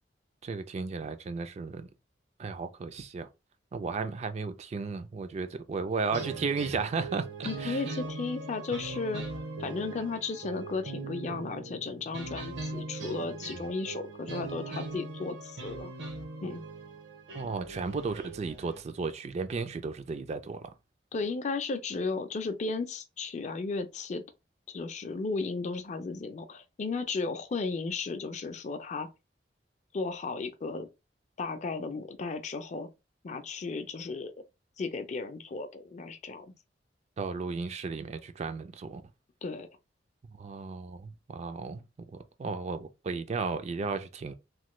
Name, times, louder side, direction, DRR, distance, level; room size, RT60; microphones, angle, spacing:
voice 1, 0.4-1.9 2.4-3.3 3.7-7.8 17.3-20.6 37.2-39.0 40.4-41.8 42.1-44.3, right 4 dB, 40° right, 0.3 m, -34 dB
sound 1, 6.1-18.8, right 3 dB, 85° right, 0.9 m, -40 dB
voice 2, 7.4-9.2 9.6-15.9 16.4-16.6 21.1-24.2 24.7-29.1 29.9-30.9 31.4-32.9 33.2-34.3 34.8-36.5 39.4-39.7, left 4 dB, 40° left, 0.4 m, -34 dB
3.0 x 2.1 x 3.0 m
head